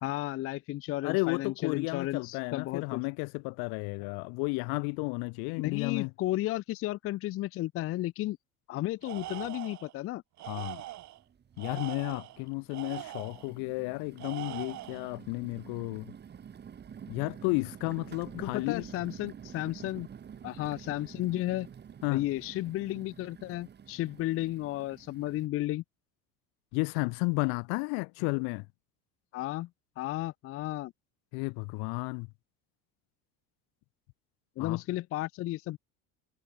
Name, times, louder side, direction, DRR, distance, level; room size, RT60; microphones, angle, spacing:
voice 1, 0.0-3.0 5.6-8.4 8.7-10.2 18.3-20.1 20.4-21.7 22.1-25.8 29.3-29.7 30.0-30.9 34.6-35.8, left 16 dB, 35° left, 0.6 m, -33 dB
voice 2, 1.0-6.1 10.5-10.8 11.6-16.1 17.1-18.9 22.0-22.2 26.7-28.7 31.3-32.3 34.6-34.8, left 33 dB, 70° left, 1.1 m, -32 dB
Tools, 9.0-9.9 10.4-11.2 11.6-13.5 14.2-15.1, right 15 dB, 45° right, 3.3 m, -42 dB
sound 1, 10.5-10.6 11.0-11.6 12.3-25.5, right 8 dB, 25° right, 6.0 m, -49 dB
cardioid pair, 160°, 38 cm